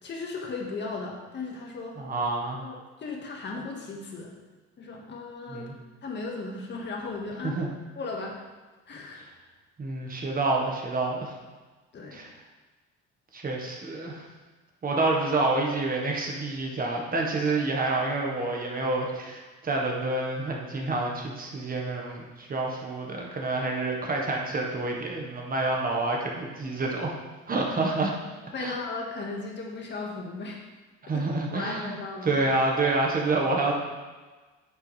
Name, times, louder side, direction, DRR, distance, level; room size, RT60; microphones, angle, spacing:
voice 1, 0.0-2.0 2.6-4.3 4.8-5.7 6.0-7.6 7.9-8.4 8.9-9.2 11.9-12.2 28.5-30.6 31.1-31.2 31.5-32.4, left 3 dB, 40° left, 0 dB, 1.8 m, -36 dB
voice 2, 2.0-2.6 5.5-5.7 7.4-7.7 9.1-9.2 9.8-11.3 12.1-12.3 13.3-14.3 14.8-27.1 27.5-28.1 28.6-28.8 31.0-33.7, right 2 dB, 30° right, -1 dB, 1.6 m, -28 dB
9.8 x 6.6 x 3.5 m, 1.3 s
cardioid pair, 115°, 29 cm